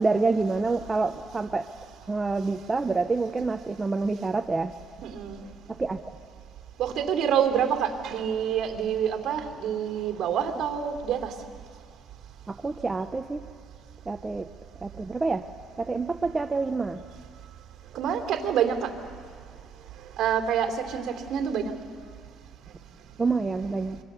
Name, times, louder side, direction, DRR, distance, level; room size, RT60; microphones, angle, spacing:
voice 1, 0.0-1.7 2.1-4.7 5.7-6.0 12.5-13.4 14.1-14.5 14.8-15.5 15.8-17.0 23.2-24.0, right 3 dB, 15° right, 8 dB, 0.5 m, -27 dB
voice 2, 5.0-5.4 6.8-11.3 17.9-18.9 20.2-21.0 21.3-21.7, right 8 dB, 60° right, 3 dB, 3.0 m, -27 dB
26.5 x 24.5 x 6.9 m, 2.1 s
cardioid pair, 150°, 0 cm